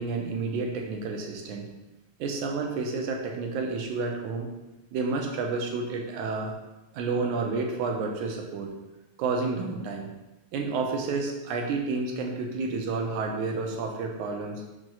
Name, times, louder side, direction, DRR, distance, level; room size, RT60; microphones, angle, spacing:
voice 1, 0.0-1.7 2.2-4.5 4.9-6.5 6.9-8.7 9.2-10.1 10.5-14.6, right 4 dB, 90° right, 1 dB, 2.3 m, -30 dB
5.9 x 4.9 x 4.0 m, 1.0 s
omnidirectional pair, 3.4 m